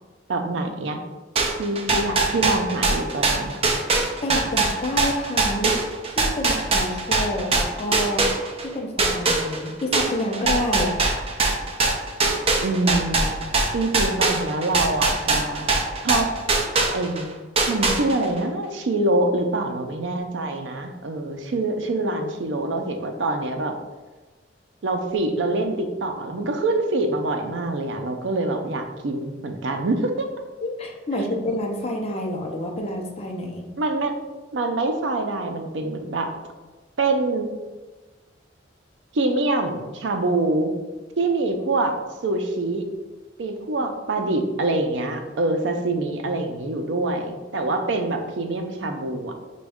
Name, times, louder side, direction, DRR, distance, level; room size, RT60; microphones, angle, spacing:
voice 1, 0.3-1.0 1.6-3.6 12.6-13.3 13.7-15.7 16.0-16.3 16.9-17.3 17.7-23.7 24.8-30.3 33.8-34.2 34.5-36.3 37.0-37.5 39.1-40.7 41.2-42.0 42.2-42.8 43.4-49.3, right 2 dB, 80° right, 5 dB, 0.5 m, -25 dB
sound 1, 1.4-8.7 9.0-17.2 17.6-18.4, right 3 dB, 35° right, 0.5 m, -22 dB
voice 2, 4.2-5.8 6.1-8.2 8.6-10.9 30.6-33.6, left 1 dB, 35° left, 1 dB, 0.6 m, -28 dB
5.0 x 2.3 x 3.5 m, 1.2 s
head